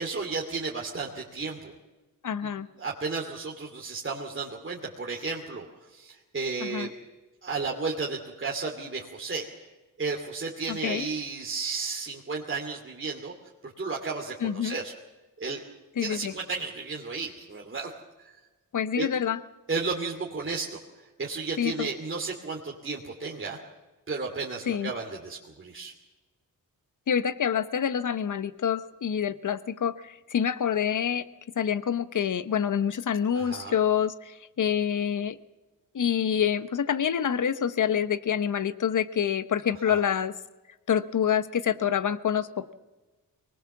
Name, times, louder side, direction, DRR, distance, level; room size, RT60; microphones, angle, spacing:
voice 1, 0.0-1.7 2.4-2.5 2.8-6.9 7.4-9.7 10.0-13.3 13.8-14.9 15.4-15.6 16.0-17.9 18.2-18.3 19.0-19.1 19.7-20.8 21.2-23.6 24.1-25.9 33.3-33.7 39.9-40.0, right 4 dB, 35° right, -1 dB, 2.7 m, -33 dB
voice 2, 2.2-2.7 6.6-6.9 10.7-11.1 14.4-14.8 16.0-16.3 18.7-19.4 21.6-21.9 24.7-24.9 27.1-31.2 31.6-35.4 35.9-40.3 40.9-42.7, left 8 dB, 60° left, 14 dB, 1.1 m, -27 dB
23.5 x 19.5 x 7.2 m, 1.2 s
cardioid pair, 85°, 35 cm